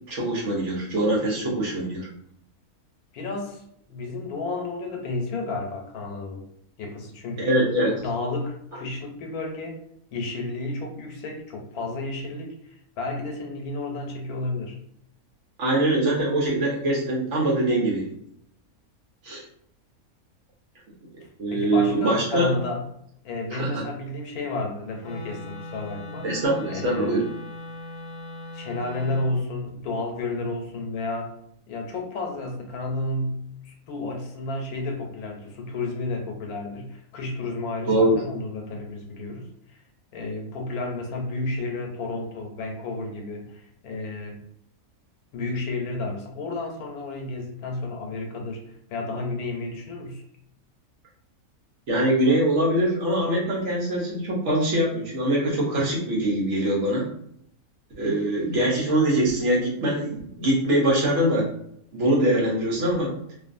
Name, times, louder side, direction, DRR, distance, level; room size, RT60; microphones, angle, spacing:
voice 1, 0.1-2.1 7.4-8.0 15.6-18.1 19.2-19.4 21.4-22.5 23.5-23.8 26.2-27.2 37.9-38.2 51.9-57.0 58.0-61.5 61.9-63.1, right 1 dB, 60° right, -3 dB, 1.0 m, -23 dB
voice 2, 3.1-3.6 3.9-6.4 6.8-7.7 8.0-9.8 10.1-14.8 21.2-22.8 23.2-26.3 26.7-27.2 28.5-31.4 31.7-39.8 40.1-44.4 45.3-48.6 48.9-50.2, left 2 dB, 85° left, 2 dB, 1.1 m, -32 dB
Wind instrument woodwind instrument, 25.0-29.4, left 1 dB, 65° left, 0.7 m, -39 dB
2.5 x 2.4 x 2.5 m, 0.70 s
omnidirectional pair, 1.5 m